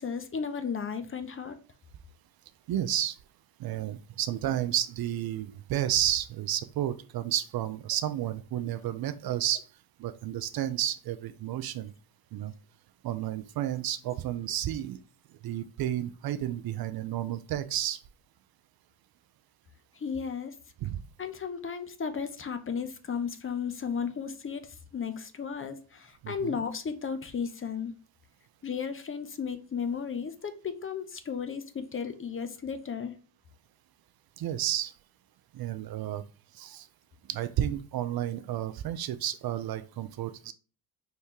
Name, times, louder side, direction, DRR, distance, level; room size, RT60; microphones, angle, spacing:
voice 1, 0.0-1.6 20.0-20.5 21.2-24.7 24.9-27.9 28.6-33.1, left 6 dB, 30° left, 0.7 m, -34 dB
voice 2, 2.7-3.2 3.6-9.7 10.0-11.9 12.3-12.5 13.0-15.0 15.4-18.0 20.8-21.0 26.2-26.6 34.4-34.9 35.5-36.2 36.5-36.9 37.3-40.5, right 12 dB, 55° right, 0.5 m, -31 dB
4.4 x 3.3 x 2.9 m
supercardioid pair, 65°, 45 cm